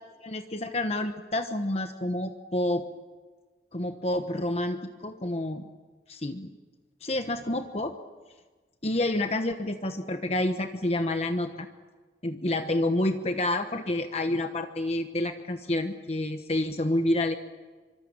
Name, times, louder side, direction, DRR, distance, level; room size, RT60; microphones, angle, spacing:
voice 1, 0.2-2.8 3.7-5.6 6.1-6.5 7.0-7.9 8.8-11.7 12.2-17.4, left 1 dB, 35° left, 7 dB, 1.2 m, -28 dB
25.5 x 25.0 x 8.9 m, 1.4 s
head